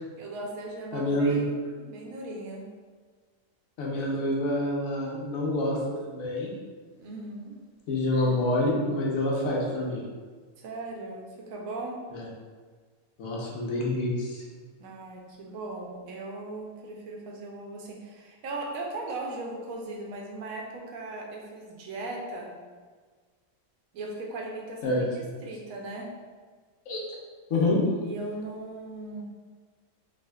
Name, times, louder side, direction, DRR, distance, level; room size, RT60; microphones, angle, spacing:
voice 1, 0.2-2.6 7.0-7.6 10.6-12.0 14.8-22.5 23.9-26.1 28.0-29.2, right 2 dB, 80° right, -1 dB, 1.0 m, -38 dB
voice 2, 0.9-1.4 3.8-6.5 7.9-10.0 12.1-12.2 13.2-14.4 24.8-25.0 26.9-27.0 27.5-27.8, left 1 dB, 80° left, -3 dB, 1.1 m, -27 dB
3.5 x 2.5 x 2.2 m, 1.5 s
omnidirectional pair, 1.4 m